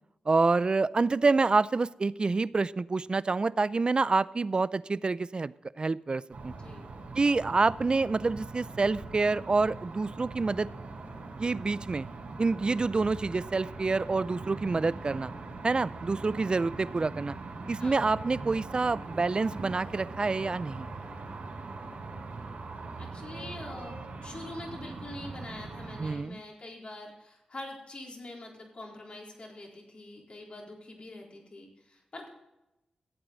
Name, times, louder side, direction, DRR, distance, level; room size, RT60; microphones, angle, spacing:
voice 1, 0.3-6.5 7.2-10.7 11.4-12.1 12.4-15.3 15.6-17.3 17.7-20.9 26.0-26.4, right 3 dB, 40° right, 19 dB, 0.4 m, -27 dB
sound 1, 6.3-26.1, right 3 dB, 85° right, 3.5 m, -41 dB
voice 2, 6.6-6.9 17.8-18.0 23.0-32.3, left 2 dB, 50° left, -1 dB, 4.1 m, -44 dB
14.5 x 8.8 x 4.0 m, 0.92 s
cardioid pair, 50°, 2 cm